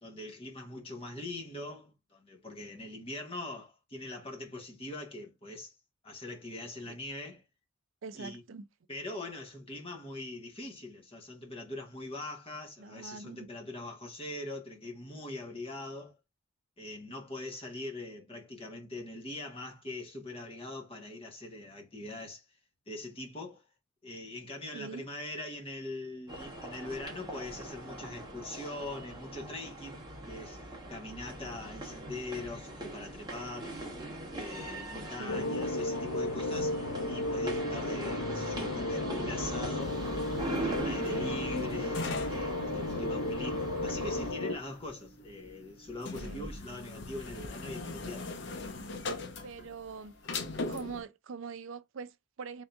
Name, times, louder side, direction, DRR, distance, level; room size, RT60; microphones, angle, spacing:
voice 1, 0.0-5.7 6.0-7.4 8.1-8.4 8.9-16.2 16.8-22.4 22.9-23.6 24.0-30.6 30.9-33.8 34.3-36.8 37.0-40.0 40.6-48.3, left 2 dB, 25° left, 1.2 m, -42 dB
voice 2, 8.0-8.7 12.8-13.5 24.7-25.0 34.9-35.6 46.2-46.5 49.4-50.2 50.7-52.6, right 4 dB, 60° right, 0.4 m, -43 dB
sound 1, 26.3-44.3, right 1 dB, 20° right, 1.2 m, -40 dB
sound 2, 35.3-44.6, left 2 dB, 85° left, 0.6 m, -34 dB
sound 3, 39.8-51.0, left 3 dB, 55° left, 0.8 m, -41 dB
3.6 x 2.8 x 3.4 m
head